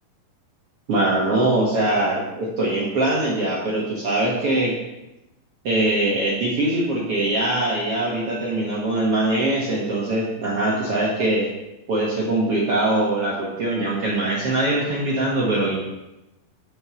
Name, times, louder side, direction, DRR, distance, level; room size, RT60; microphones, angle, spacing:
voice 1, 0.9-4.8 5.6-11.5 11.9-15.8, right 2 dB, 55° right, -4 dB, 1.6 m, -22 dB
6.5 x 6.3 x 6.9 m, 0.96 s
omnidirectional pair, 4.5 m